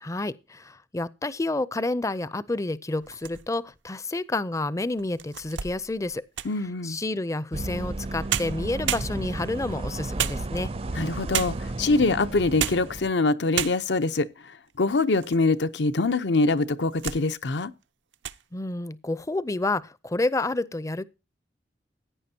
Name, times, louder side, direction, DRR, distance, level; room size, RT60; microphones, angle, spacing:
voice 1, 0.0-6.2 6.8-10.7 18.5-21.0, left 2 dB, 20° left, 0.5 m, -29 dB
sound 1, 3.0-3.7 4.3-4.4 5.0-6.7 7.9-8.0 8.3-9.5 10.2-10.9 11.3-11.8 12.4-13.0 13.2-13.3 13.5-14.1 14.7-15.5 15.8-15.9 16.6-17.3 17.6-17.8 18.1-18.4, right 10 dB, 85° right, 0.6 m, -32 dB
voice 2, 6.4-7.0 10.9-14.3 14.8-17.7, left 3 dB, 75° left, 0.8 m, -24 dB
sound 2, 7.5-13.1, right 2 dB, 35° right, 0.5 m, -33 dB
15.5 x 9.7 x 2.8 m
head